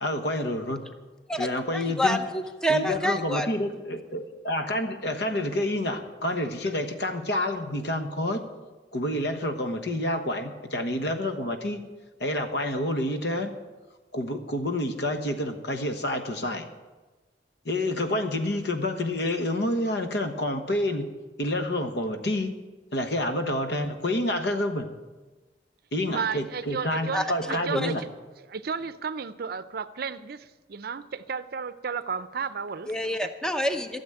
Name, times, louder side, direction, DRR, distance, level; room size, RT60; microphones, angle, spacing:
voice 1, 0.0-0.8 1.4-2.2 2.7-8.4 8.9-11.8 12.2-13.5 14.1-16.6 17.6-21.1 21.4-22.5 22.9-24.9 25.9-28.0, left 1 dB, 70° left, 7 dB, 1.3 m, -28 dB
voice 2, 1.7-3.5 27.1-27.2 27.7-27.9 32.9-34.0, equal, 5° left, 7 dB, 0.8 m, -27 dB
voice 3, 26.1-27.9 28.5-32.9 33.2-33.3, right 6 dB, 60° right, 14 dB, 0.5 m, -33 dB
13.5 x 7.2 x 8.9 m, 1.2 s
head